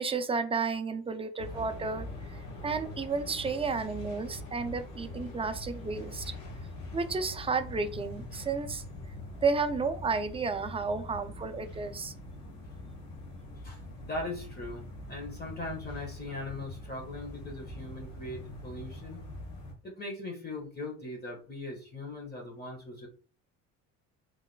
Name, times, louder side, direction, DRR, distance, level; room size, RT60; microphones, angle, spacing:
voice 1, 0.0-6.3 6.9-8.8 9.4-12.1, right 4 dB, 15° right, 9 dB, 0.4 m, -32 dB
sound 1, 1.4-19.7, left 1 dB, 70° left, 1.3 m, -43 dB
voice 2, 13.6-19.2 19.8-23.1, left 2 dB, 25° left, 0 dB, 1.5 m, -40 dB
3.6 x 3.3 x 2.2 m, 0.37 s
supercardioid pair, 75°, 36 cm